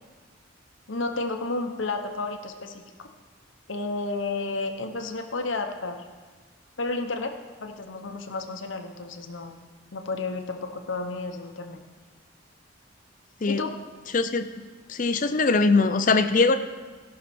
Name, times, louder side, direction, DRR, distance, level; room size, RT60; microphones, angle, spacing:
voice 1, 0.9-2.8 3.7-6.0 6.8-7.3 7.6-9.5 9.9-11.8 13.5-13.7, left 3 dB, 70° left, 5 dB, 0.9 m, -31 dB
voice 2, 14.1-14.5 14.9-16.6, left 3 dB, 40° left, 10 dB, 0.5 m, -21 dB
16.0 x 5.8 x 4.3 m, 1.4 s
head